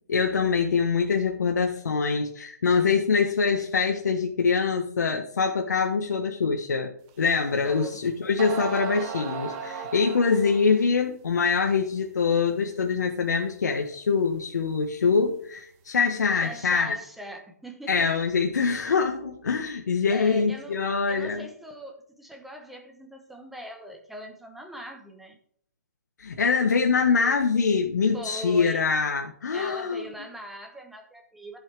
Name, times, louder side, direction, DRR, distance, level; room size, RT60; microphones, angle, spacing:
voice 1, 0.1-17.0 17.9-21.5 26.2-30.1, left 5 dB, 75° left, 2 dB, 1.5 m, -24 dB
sound 1, 7.3-7.4 8.0-8.1 8.4-10.8, right 5 dB, 25° right, 1.0 m, -36 dB
voice 2, 7.6-8.0 16.3-18.3 20.1-20.8 21.1-25.4 28.1-28.8 29.5-31.6, right 1 dB, ahead, 3 dB, 1.1 m, -41 dB
14.5 x 5.7 x 3.5 m, 0.63 s
hypercardioid pair, 155°, 9 cm